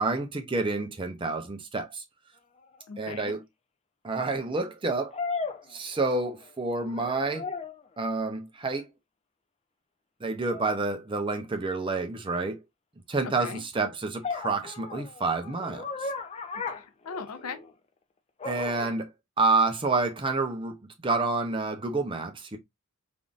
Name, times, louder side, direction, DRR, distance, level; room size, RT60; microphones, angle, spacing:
voice 1, 0.0-2.0 3.0-3.4 4.0-5.2 5.7-7.5 8.0-8.9 10.2-12.6 13.1-16.1 18.4-19.1 19.4-22.6, right 3 dB, 25° right, 0.5 m, -29 dB
sound 1, 2.7-2.8 5.1-6.4 6.8-7.9 10.5-10.8 14.2-17.7 18.4-19.0, left 4 dB, 30° left, 0.4 m, -36 dB
voice 2, 2.9-3.4 13.2-13.6 16.7-17.6, left 5 dB, 90° left, 0.6 m, -39 dB
3.5 x 2.5 x 2.4 m
head